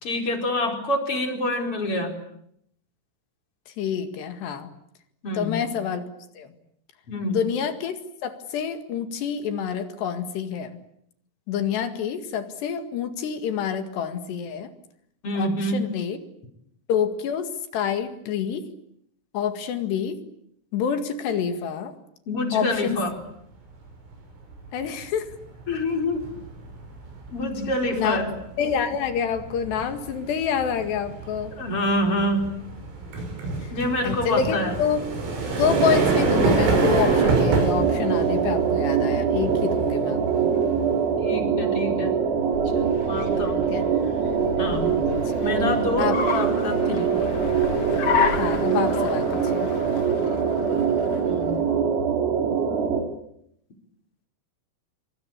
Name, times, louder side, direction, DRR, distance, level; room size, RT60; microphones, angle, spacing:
voice 1, 0.0-2.1 5.2-5.6 7.1-7.4 15.2-15.8 22.3-23.2 25.7-26.3 27.3-28.3 31.5-32.5 33.7-34.7 41.2-42.2 42.6-43.6 44.6-44.9 45.4-47.2 51.2-51.6, left 1 dB, 30° left, 4 dB, 4.9 m, -27 dB
voice 2, 3.8-4.7 5.3-6.1 6.4-6.5 7.2-10.8 11.5-14.7 15.4-16.2 16.9-18.7 19.3-20.2 20.7-22.0 22.5-23.0 24.7-25.3 27.9-28.2 28.6-31.5 34.0-35.1 35.6-40.5 43.7-43.8 46.0-46.2 48.4-49.7, left 7 dB, 65° left, 9 dB, 3.8 m, -27 dB
sound 1, 23.8-24.1 24.5-41.2, right 3 dB, 75° right, 8.5 m, -28 dB
sound 2, 35.6-53.0, right 6 dB, 90° right, 6.7 m, -23 dB
Car, 42.2-51.7, left 6 dB, 45° left, 2.2 m, -31 dB
26.5 x 25.0 x 8.8 m, 0.71 s
omnidirectional pair, 5.8 m